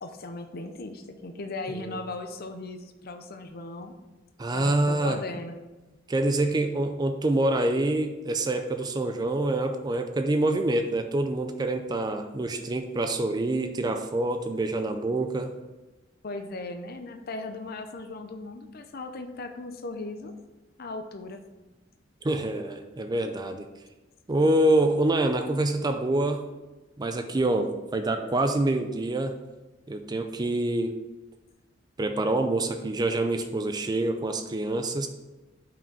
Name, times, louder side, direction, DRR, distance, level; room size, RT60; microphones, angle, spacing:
voice 1, 0.0-3.9 4.5-5.5 16.2-20.3 20.8-21.4, left 2 dB, 50° left, 7 dB, 0.6 m, -37 dB
voice 2, 4.4-5.2 6.1-15.5 22.2-23.7 24.3-26.5 27.0-29.3 29.9-31.0 32.0-35.1, right 2 dB, 20° right, 7 dB, 0.4 m, -26 dB
5.7 x 5.0 x 5.3 m, 1.1 s
head